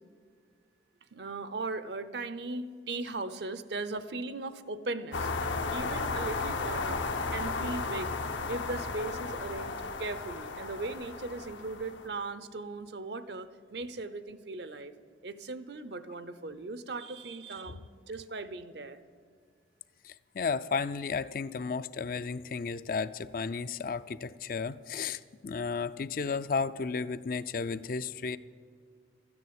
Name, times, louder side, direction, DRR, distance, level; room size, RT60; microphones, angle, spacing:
voice 1, 1.1-5.3 5.7-7.0 7.3-8.1 8.5-9.7 10.0-15.0 15.2-17.8 18.1-19.0, right 3 dB, 65° right, 13 dB, 0.7 m, -38 dB
sound 1, 5.1-12.1, left 3 dB, 85° left, 1.0 m, -34 dB
voice 2, 20.0-28.4, left 5 dB, 50° left, 14 dB, 0.4 m, -33 dB
13.5 x 9.6 x 8.7 m, 2.1 s
head